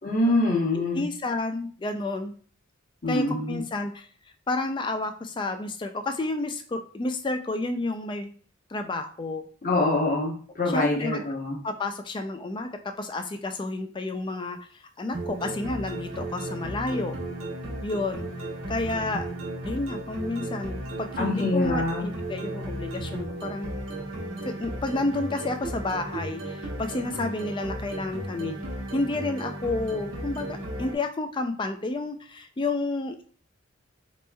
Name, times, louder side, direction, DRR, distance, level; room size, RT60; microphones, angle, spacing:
voice 1, 0.0-1.0 3.0-3.6 9.6-11.6 21.2-22.1, left 2 dB, 40° left, -2 dB, 1.0 m, -25 dB
voice 2, 0.7-2.3 3.1-4.1 4.5-8.3 8.7-9.4 10.6-11.2 11.6-17.2 17.8-18.3 18.7-19.3 19.7-23.7 24.4-28.6 28.9-33.3, left 2 dB, 25° left, 7 dB, 0.3 m, -30 dB
sound 1, 15.1-31.0, right 1 dB, 85° right, 1.1 m, -35 dB
4.1 x 3.0 x 2.2 m, 0.44 s
head